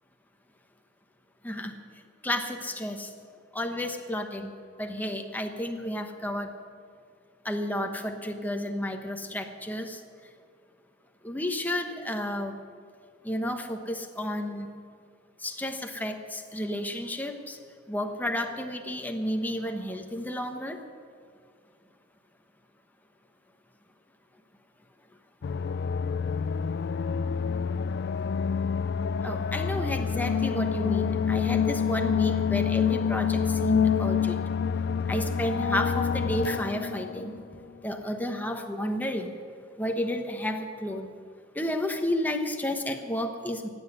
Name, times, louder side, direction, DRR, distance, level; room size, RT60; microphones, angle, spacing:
voice 1, 2.2-3.1 3.5-4.5 4.8-6.5 7.4-10.0 11.2-12.5 13.2-14.7 15.4-17.6 17.9-20.8 29.2-34.4 35.1-37.3 37.8-39.3 39.8-41.1 41.5-43.7, left 1 dB, 10° left, 4 dB, 1.1 m, -31 dB
sound 1, 25.4-37.4, left 6 dB, 60° left, 0.3 m, -27 dB
17.0 x 8.0 x 9.8 m, 2.1 s
head